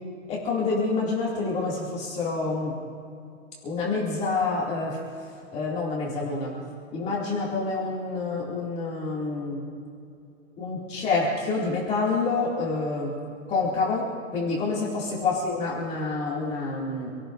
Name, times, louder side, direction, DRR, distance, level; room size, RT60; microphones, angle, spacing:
voice 1, 0.3-2.7 3.6-5.0 5.5-6.6 6.9-9.6 10.6-13.1 13.5-14.0 14.3-17.1, left 3 dB, 15° left, -5 dB, 2.3 m, -27 dB
27.0 x 17.0 x 2.6 m, 2.5 s
hypercardioid pair, 170°, 38 cm